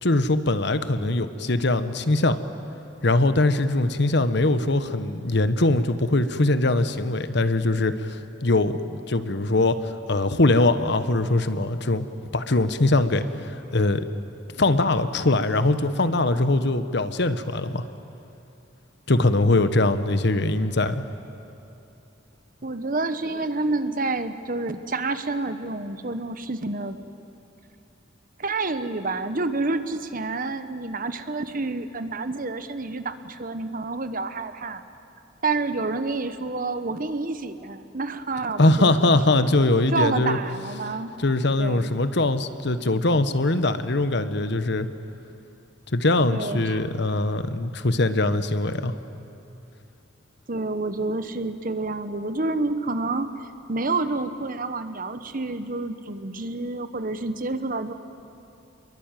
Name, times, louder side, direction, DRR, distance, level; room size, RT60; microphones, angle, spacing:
voice 1, 0.0-2.4 3.0-12.1 12.3-14.0 14.6-17.8 19.1-21.0 38.6-40.4 41.2-44.9 45.9-48.9, left 2 dB, 60° left, 11 dB, 1.2 m, -22 dB
voice 2, 22.6-27.0 28.4-34.8 35.4-39.0 39.9-41.2 41.6-42.0 46.3-46.8 50.5-53.3 53.7-57.9, right 3 dB, 45° right, 10 dB, 1.2 m, -28 dB
28.5 x 22.5 x 9.2 m, 2.7 s
head